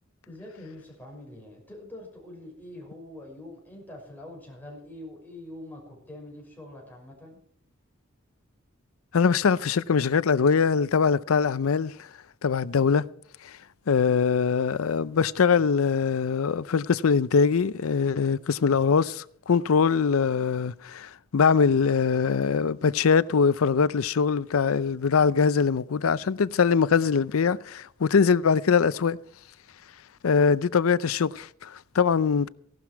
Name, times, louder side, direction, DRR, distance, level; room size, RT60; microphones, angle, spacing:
voice 1, 0.3-7.4, left 1 dB, 10° left, 5.9 m, -44 dB
voice 2, 9.1-11.9 12.4-13.0 13.4-13.5 13.9-29.2 30.2-32.5, left 5 dB, 90° left, 0.5 m, -22 dB
16.5 x 12.0 x 4.6 m
head